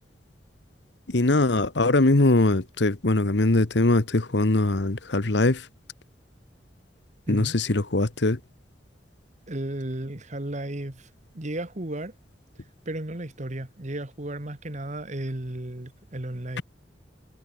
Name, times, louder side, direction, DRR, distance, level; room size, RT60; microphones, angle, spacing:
voice 1, 1.1-5.6 7.3-8.4, left 2 dB, 70° left, 1.3 m, -21 dB
voice 2, 9.5-11.1 11.3-12.1 12.9-16.6, right 1 dB, 40° right, 1.7 m, -34 dB
head